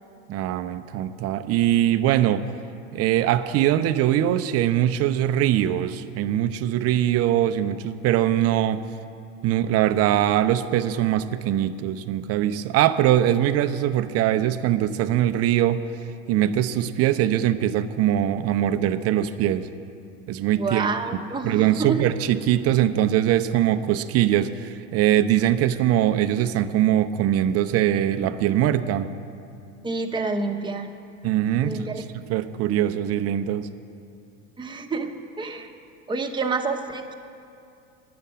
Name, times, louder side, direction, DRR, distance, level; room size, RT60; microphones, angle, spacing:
voice 1, 0.3-2.5 2.9-8.8 9.4-15.8 16.3-19.7 20.3-20.9 21.4-29.1 31.2-31.8 32.1-33.7, right 11 dB, 40° right, 11 dB, 0.6 m, -22 dB
voice 2, 20.6-22.1 29.8-30.9 31.6-32.0 34.6-35.7 36.1-37.1, right 4 dB, 10° right, 3 dB, 0.9 m, -28 dB
10.5 x 6.7 x 8.6 m, 2.5 s
hypercardioid pair, 100°, 37 cm